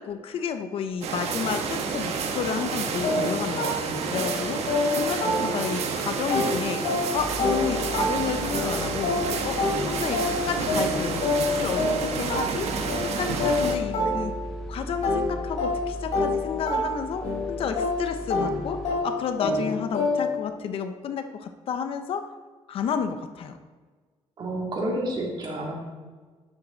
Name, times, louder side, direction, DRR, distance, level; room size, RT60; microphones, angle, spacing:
voice 1, 0.0-4.6 4.9-6.8 7.1-9.2 9.4-12.7 13.0-14.4 14.7-17.2 17.5-22.3 22.7-23.6, left 6 dB, 55° left, 8 dB, 0.7 m, -31 dB
sound 1, 1.0-13.8, right 5 dB, 70° right, 1.2 m, -30 dB
sound 2, 3.0-5.9 6.3-14.6 15.0-20.5, left 2 dB, 85° left, 3.3 m, -28 dB
sound 3, 7.1-19.0, right 1 dB, 5° left, 1.3 m, -39 dB
voice 2, 24.4-25.7, right 1 dB, 40° right, -2 dB, 2.6 m, -29 dB
12.5 x 7.5 x 3.9 m, 1.4 s
cardioid pair, 180°, 11 cm